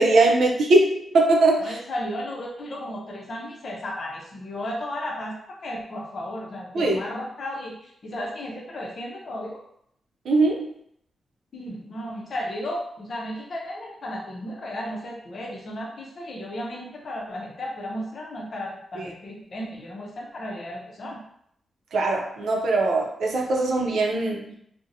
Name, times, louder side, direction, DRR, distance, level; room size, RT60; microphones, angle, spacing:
voice 1, 0.0-1.8 6.7-7.0 10.3-10.7 19.0-19.1 21.9-24.5, right 2 dB, 80° right, 0 dB, 0.5 m, -21 dB
voice 2, 1.6-5.4 5.6-9.6 11.5-21.2, left 1 dB, 50° left, -1 dB, 0.6 m, -34 dB
2.7 x 2.1 x 2.6 m, 0.71 s
wide cardioid pair, 130°, 0 cm